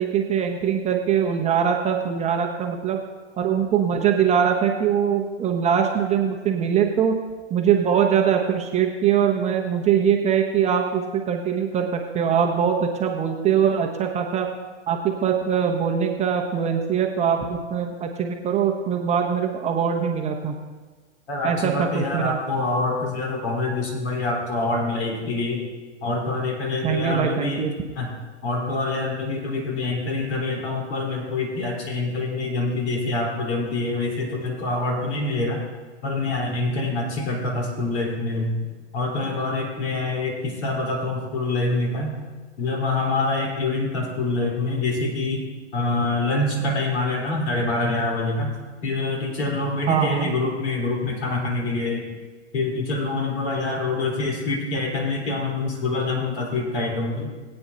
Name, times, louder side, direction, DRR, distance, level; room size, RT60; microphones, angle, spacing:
voice 1, 0.0-3.0 3.4-7.1 7.5-14.5 14.9-20.6 21.4-22.4 26.8-27.7 49.9-50.3, right 8 dB, 20° right, 2 dB, 0.8 m, -22 dB
voice 2, 21.3-25.6 26.0-27.7 28.0-28.1 28.4-35.6 36.0-38.5 38.9-42.1 42.6-45.5 45.7-48.5 48.8-52.1 52.5-57.3, left 2 dB, 65° left, -1 dB, 4.1 m, -25 dB
20.0 x 8.8 x 2.8 m, 1.3 s
hypercardioid pair, 120°, 36 cm